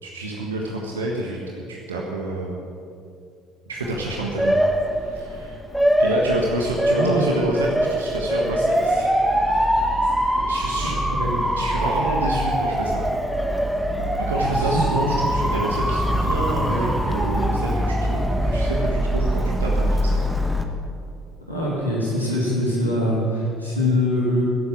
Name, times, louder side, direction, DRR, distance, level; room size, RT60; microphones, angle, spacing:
voice 1, 0.0-2.6 3.7-4.5 5.0-5.6 6.0-9.2 10.0-11.0 11.6-13.0 14.2-20.1, right 2 dB, 80° right, -2 dB, 1.4 m, -28 dB
Motor vehicle (road) / Siren, 3.8-20.6, equal, ahead, 1.5 m, -22 dB
voice 2, 6.9-7.3 10.9-11.4 14.6-14.7 21.5-24.4, left 1 dB, 90° left, -6 dB, 3.1 m, -23 dB
15.5 x 8.2 x 8.6 m, 2.5 s
figure-of-eight pair, 55°, 0 cm